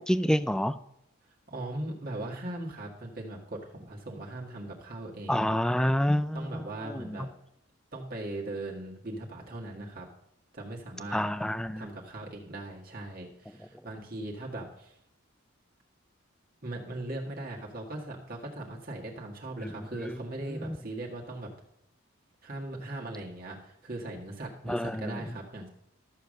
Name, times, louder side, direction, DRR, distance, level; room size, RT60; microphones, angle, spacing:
voice 1, 0.1-0.8 5.3-7.3 11.1-11.9 19.6-20.2 20.5-20.8 24.7-25.3, equal, 5° left, 14 dB, 0.3 m, -29 dB
voice 2, 1.5-5.5 6.3-7.3 7.9-10.1 10.5-11.2 11.8-15.0 16.6-21.5 22.4-25.7, right 1 dB, 40° right, -2 dB, 1.8 m, -39 dB
13.0 x 7.0 x 6.5 m, 0.79 s
head